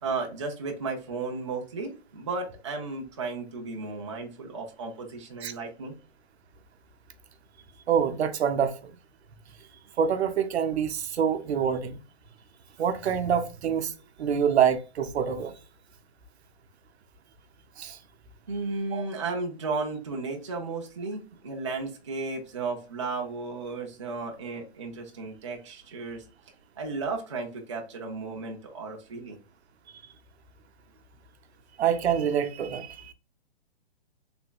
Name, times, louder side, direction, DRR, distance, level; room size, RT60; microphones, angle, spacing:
voice 1, 0.0-6.0 18.5-26.2 26.8-29.4, right 3 dB, 30° right, 0.4 m, -34 dB
voice 2, 7.9-8.7 10.0-12.0 12.8-13.9 14.2-15.5 17.8-18.0 18.9-19.1 31.8-33.1, right 8 dB, 80° right, 0.6 m, -26 dB
3.4 x 2.9 x 2.2 m
hypercardioid pair, 175°, 32 cm